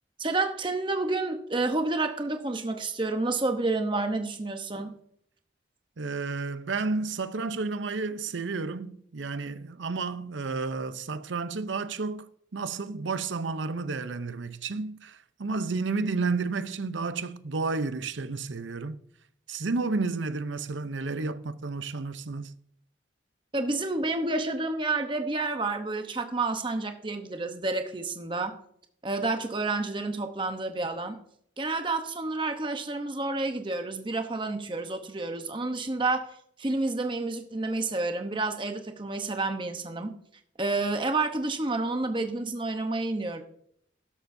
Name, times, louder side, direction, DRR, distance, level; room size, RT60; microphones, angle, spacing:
voice 1, 0.2-4.9 23.5-28.6 29.0-31.2 31.6-36.3 36.6-40.2 40.6-43.4, right 3 dB, 25° right, 0.9 m, -29 dB
voice 2, 6.0-19.0 19.5-22.5, right 4 dB, 85° right, 0.7 m, -31 dB
12.5 x 11.5 x 2.7 m
head